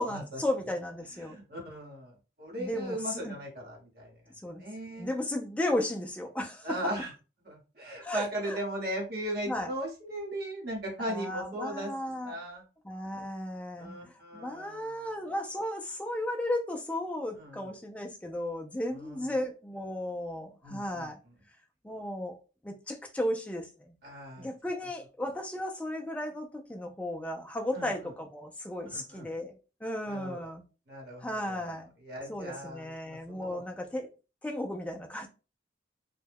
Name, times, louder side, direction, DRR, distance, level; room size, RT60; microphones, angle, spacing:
voice 1, 0.0-1.4 2.6-3.3 4.4-4.6 5.0-6.8 8.0-8.6 9.5-9.7 11.0-12.4 12.8-21.2 21.8-22.4 22.6-23.9 24.4-29.5 29.8-30.6 31.2-31.9 32.3-34.1 34.4-35.3, left 1 dB, 5° left, 3 dB, 0.3 m, -35 dB
voice 2, 1.2-4.1 4.6-5.1 6.6-7.1 7.4-11.9 12.2-12.6 13.8-15.0 17.3-17.7 18.9-19.2 20.6-21.1 24.0-24.5 27.7-27.9 28.9-29.3 30.1-30.4 30.9-31.7 32.0-33.6, right 1 dB, 50° right, -1 dB, 1.1 m, -38 dB
2.2 x 2.1 x 3.4 m, 0.33 s
head